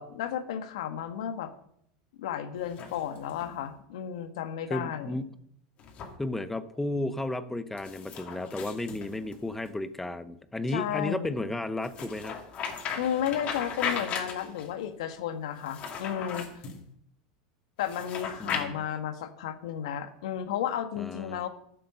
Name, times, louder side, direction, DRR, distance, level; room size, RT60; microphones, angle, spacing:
voice 1, 0.0-1.5 2.2-5.2 10.7-11.3 13.0-16.5 17.8-21.5, left 9 dB, 85° left, 8 dB, 1.4 m, -33 dB
sound 1, 2.6-3.5 5.8-6.1 7.8-9.7 11.8-14.7 15.6-16.8 17.8-18.6, left 6 dB, 40° left, 2.6 m, -37 dB
voice 2, 4.7-5.3 6.2-12.4 18.4-18.8 21.0-21.4, left 2 dB, 5° left, 12 dB, 0.7 m, -33 dB
11.5 x 7.7 x 5.5 m, 0.69 s
supercardioid pair, 120°, 3 cm